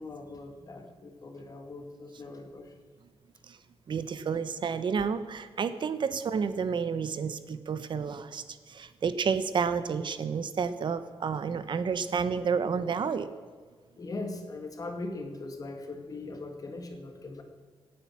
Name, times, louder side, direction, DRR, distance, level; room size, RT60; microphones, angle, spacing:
voice 1, 0.0-2.8 14.0-17.4, left 2 dB, 40° left, 5 dB, 2.3 m, -40 dB
voice 2, 3.9-13.3, right 6 dB, 55° right, 12 dB, 1.1 m, -30 dB
17.5 x 9.3 x 7.3 m, 1.5 s
wide cardioid pair, 140°, 10 cm